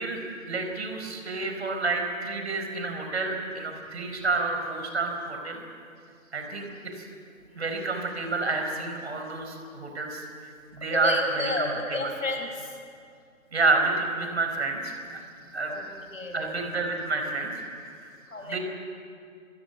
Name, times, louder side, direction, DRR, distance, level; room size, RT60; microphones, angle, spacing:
voice 1, 0.0-5.6 6.3-7.1 7.6-10.2 10.7-12.1 13.5-15.2 15.5-15.7 16.3-17.5 17.8-18.2 18.4-18.6, right 3 dB, 50° right, 4 dB, 4.8 m, -29 dB
voice 2, 10.8-12.7 15.7-16.5 18.3-18.6, left 2 dB, 70° left, 4 dB, 5.5 m, -32 dB
27.0 x 16.0 x 9.2 m, 2.4 s
figure-of-eight pair, 150°, 41 cm